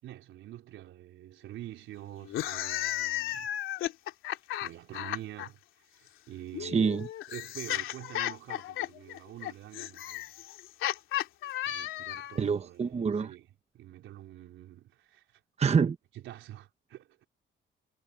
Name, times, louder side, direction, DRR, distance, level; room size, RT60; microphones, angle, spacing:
voice 1, 0.0-3.5 4.6-5.6 5.9-6.9 7.3-10.3 11.6-13.5 13.7-15.4 16.1-17.3, right 13 dB, 85° right, 4.2 m, -46 dB
sound 1, 2.2-5.5 6.5-12.4, left 13 dB, 90° left, 2.9 m, -34 dB
voice 2, 6.6-7.1 12.4-13.3 15.6-16.0, right 6 dB, 35° right, 1.0 m, -26 dB
cardioid pair, 90°, 20 cm